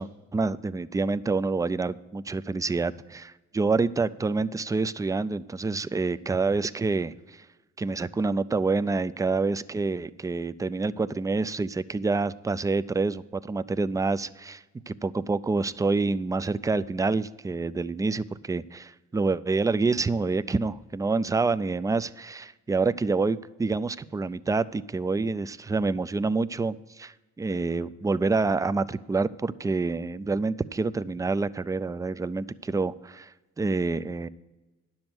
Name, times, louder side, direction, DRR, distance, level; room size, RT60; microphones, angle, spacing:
voice 1, 0.0-7.5 7.8-34.3, right 3 dB, 10° right, 15 dB, 0.3 m, -27 dB
10.5 x 7.2 x 6.0 m, 1.2 s
cardioid pair, 90°, 30 cm